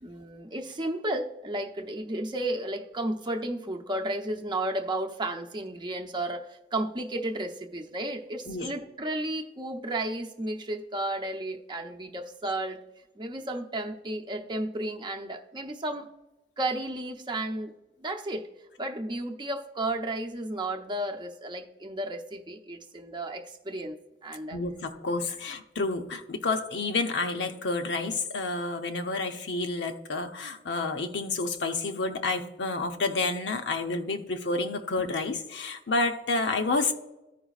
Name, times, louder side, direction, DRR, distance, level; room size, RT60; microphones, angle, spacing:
voice 1, 0.0-12.8 13.2-16.1 16.6-17.7 18.0-18.5 18.8-24.6, right 1 dB, 25° right, 0.7 m, -33 dB
voice 2, 24.5-36.9, left 3 dB, 85° left, 0.8 m, -29 dB
14.5 x 5.0 x 2.4 m
head